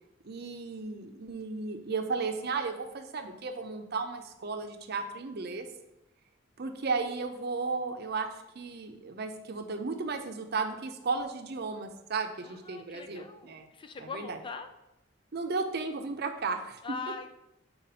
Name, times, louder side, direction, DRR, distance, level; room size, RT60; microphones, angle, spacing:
voice 1, 0.2-5.7 6.6-13.6 14.0-14.4 15.3-16.8, right 4 dB, 55° right, 7 dB, 0.6 m, -34 dB
voice 2, 12.4-14.7 16.8-17.3, left 5 dB, 25° left, 8 dB, 0.3 m, -41 dB
4.1 x 4.1 x 5.5 m, 0.89 s
head